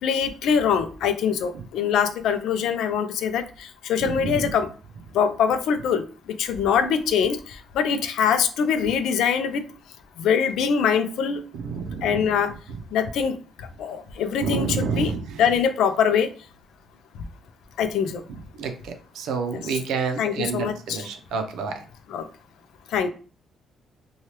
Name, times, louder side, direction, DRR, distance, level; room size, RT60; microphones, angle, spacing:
voice 1, 0.0-4.7 5.1-6.0 6.4-9.6 10.2-11.4 12.0-12.5 12.9-15.1 15.4-16.3 17.8-18.2 19.5-19.8 20.2-21.1 22.1-22.2 22.9-23.1, left 7 dB, 80° left, 9 dB, 0.4 m, -23 dB
voice 2, 4.0-4.5 11.5-12.2 14.4-15.2 18.6-21.8, right 5 dB, 85° right, 5 dB, 0.5 m, -28 dB
2.8 x 2.3 x 3.2 m, 0.38 s
cardioid pair, 90°, 0 cm